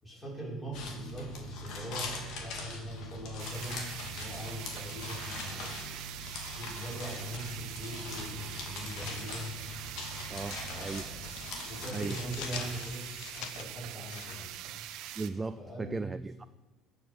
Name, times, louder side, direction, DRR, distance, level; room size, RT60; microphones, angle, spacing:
voice 1, 0.0-5.8 6.5-9.6 10.6-11.3 11.6-13.1 13.3-14.5 15.6-16.1, right 1 dB, 15° left, -5 dB, 6.3 m, -42 dB
sound 1, 0.7-12.8, left 2 dB, 65° left, 3.0 m, -41 dB
sound 2, 3.4-15.3, right 12 dB, 70° right, 1.0 m, -44 dB
sound 3, 9.6-9.9 10.2-10.4 10.8-15.2, left 8 dB, 80° left, 1.3 m, -48 dB
voice 2, 10.3-11.1 11.9-12.2 15.2-16.5, right 3 dB, 15° right, 12 dB, 0.4 m, -37 dB
21.0 x 7.1 x 6.9 m, 1.2 s
cardioid pair, 140°, 0 cm